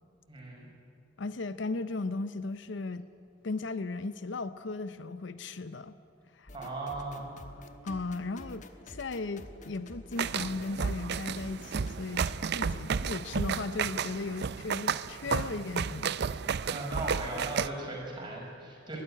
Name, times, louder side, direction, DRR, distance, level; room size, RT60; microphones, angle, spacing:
voice 1, 0.3-0.7 6.5-7.3 16.7-19.0, right 2 dB, 25° right, -2 dB, 5.5 m, -38 dB
voice 2, 1.2-3.1 3.4-5.9 6.3-6.5 7.8-16.2, left 3 dB, 65° left, 13 dB, 0.7 m, -36 dB
sound 1, 6.5-12.0, left 1 dB, 40° left, 1.3 m, -49 dB
sound 2, 10.2-17.7, right 6 dB, 55° right, 0.5 m, -32 dB
20.5 x 13.0 x 9.9 m, 2.6 s
head